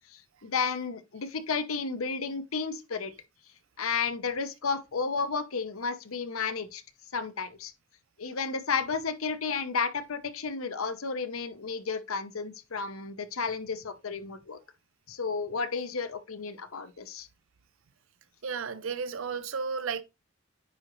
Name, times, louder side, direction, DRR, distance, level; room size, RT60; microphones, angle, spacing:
voice 1, 0.1-3.1 3.8-6.8 7.1-7.7 8.2-14.6 15.1-17.3, left 5 dB, 85° left, 0.8 m, -32 dB
voice 2, 18.4-20.0, right 5 dB, 70° right, 0.6 m, -33 dB
9.4 x 3.9 x 3.1 m
head